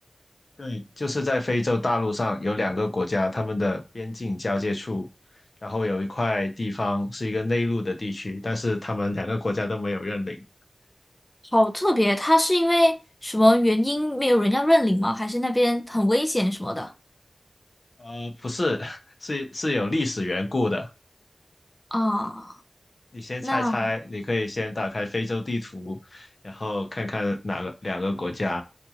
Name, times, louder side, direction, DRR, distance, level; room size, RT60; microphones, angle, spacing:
voice 1, 0.6-5.1 5.6-10.4 18.0-20.9 23.1-28.6, left 2 dB, 55° left, 0.7 m, -27 dB
voice 2, 11.5-13.0 13.2-16.9 21.9-22.6 23.4-23.9, left 1 dB, 20° left, 0.5 m, -21 dB
2.6 x 2.4 x 2.8 m
cardioid pair, 45°, 0 cm